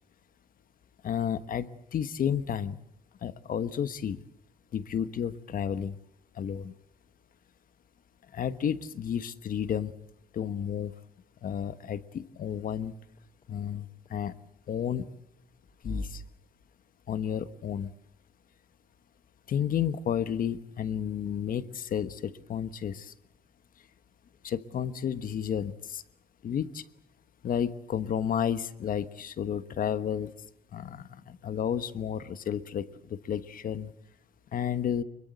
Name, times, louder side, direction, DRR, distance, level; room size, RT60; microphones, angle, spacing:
voice 1, 1.0-2.8 3.2-4.2 4.7-6.0 6.3-6.7 8.3-9.9 10.3-10.9 11.4-12.9 13.5-14.3 14.7-15.1 15.8-16.2 17.1-17.9 19.5-23.1 24.4-26.0 26.4-26.8 27.4-30.3 30.7-33.9 34.5-35.0, left 8 dB, 65° left, 13 dB, 1.3 m, -32 dB
sound 1, 12.1-16.1, left 2 dB, 45° left, 3.9 m, -47 dB
24.5 x 22.5 x 7.8 m, 0.78 s
cardioid pair, 105°, 16 cm